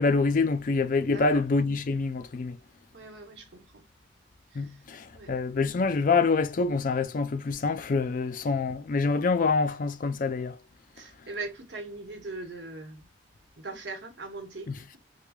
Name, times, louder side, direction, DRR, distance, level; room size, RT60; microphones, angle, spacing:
voice 1, 0.0-2.6 4.5-10.6 14.7-14.8, left 4 dB, 50° left, 0.4 m, -26 dB
voice 2, 1.1-1.4 2.9-3.8 4.5-4.8 5.1-5.3 11.0-13.1 13.6-15.0, right 3 dB, 85° right, 1.0 m, -40 dB
4.8 x 2.2 x 2.3 m
head